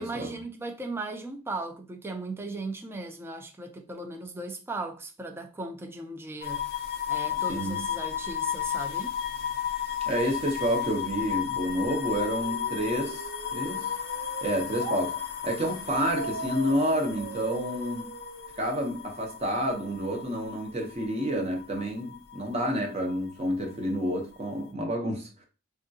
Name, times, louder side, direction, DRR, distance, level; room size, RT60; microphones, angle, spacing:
voice 1, 0.0-6.7 7.1-9.2, right 2 dB, 10° right, 0.3 m, -37 dB
sound 1, 6.4-23.3 23.6-24.6, left 9 dB, 50° left, 0.4 m, -34 dB
voice 2, 7.5-7.8 10.1-13.9 14.4-18.1 18.6-25.3, equal, 30° right, 0.8 m, -29 dB
sound 2, 12.2-15.0 16.0-19.0, right 4 dB, 80° right, 0.5 m, -40 dB
3.4 x 2.3 x 2.7 m
head